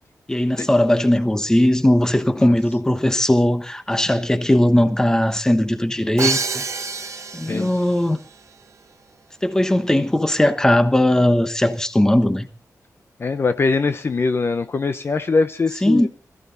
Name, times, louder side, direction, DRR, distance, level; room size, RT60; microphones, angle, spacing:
voice 1, 0.3-6.6 7.3-8.2 9.4-12.5 15.8-16.1, left 1 dB, 10° left, 1.1 m, -18 dB
Crash cymbal, 6.2-8.0, right 4 dB, 50° right, 1.3 m, -26 dB
voice 2, 13.2-16.1, left 4 dB, 40° left, 0.7 m, -22 dB
21.0 x 14.0 x 4.0 m
wide cardioid pair, 155°, 6 cm